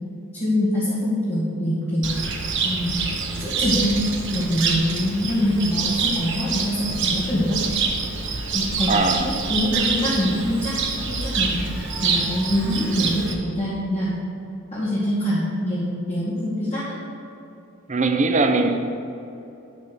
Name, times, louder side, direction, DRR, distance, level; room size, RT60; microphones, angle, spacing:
voice 1, 0.3-2.1 2.6-3.1 3.4-4.0 4.3-7.6 8.5-10.7 11.1-14.2 14.7-16.9, left 1 dB, 30° left, -9 dB, 1.9 m, -24 dB
Cricket, 2.0-13.3, right 4 dB, 60° right, 1.1 m, -26 dB
voice 2, 8.9-9.3 17.9-18.8, right 3 dB, 35° right, 6 dB, 0.7 m, -20 dB
12.0 x 4.4 x 6.0 m, 2.9 s
head